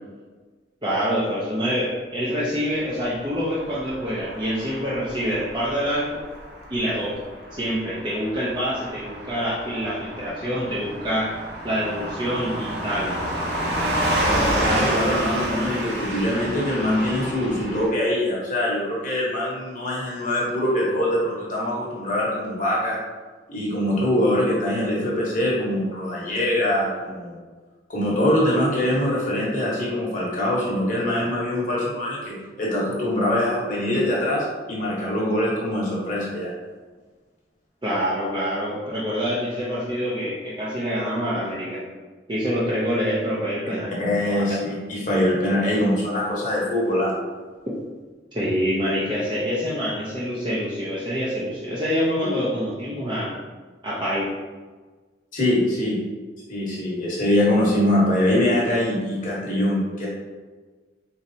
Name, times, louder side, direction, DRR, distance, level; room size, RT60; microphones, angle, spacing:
voice 1, 0.8-6.2 6.7-7.2 7.5-11.4 11.6-13.3 37.8-41.8 42.3-43.9 44.3-44.4 48.3-53.3 53.8-54.3, equal, 25° right, -8 dB, 0.5 m, -26 dB
Car passing by / Truck, 3.6-17.9, right 1 dB, 65° right, 0.8 m, -29 dB
voice 2, 14.6-23.0 23.5-27.4 27.9-36.5 44.0-47.1 52.2-52.3 55.3-56.0 56.5-60.1, left 1 dB, 45° left, -5 dB, 0.9 m, -23 dB
4.0 x 3.1 x 2.6 m, 1.4 s
head